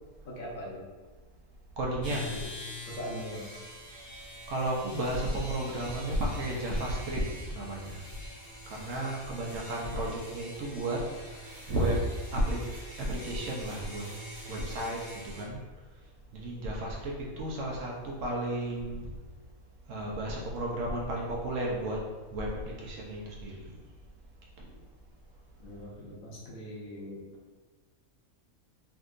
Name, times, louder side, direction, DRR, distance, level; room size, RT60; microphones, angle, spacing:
voice 1, 0.2-0.8 2.0-2.5 2.9-3.5 25.6-27.3, equal, 70° left, -4 dB, 1.1 m, -41 dB
voice 2, 1.8-2.4 4.5-8.0 8.7-11.4 11.7-12.0 12.3-12.6 13.0-14.1 14.5-15.6 16.3-19.1 19.9-22.0 22.3-23.7 24.6-24.7, right 1 dB, 65° right, -3 dB, 0.9 m, -33 dB
sound 1, 2.0-15.4, equal, 20° left, 0.8 m, -45 dB
3.5 x 2.7 x 2.4 m, 1.3 s
omnidirectional pair, 1.5 m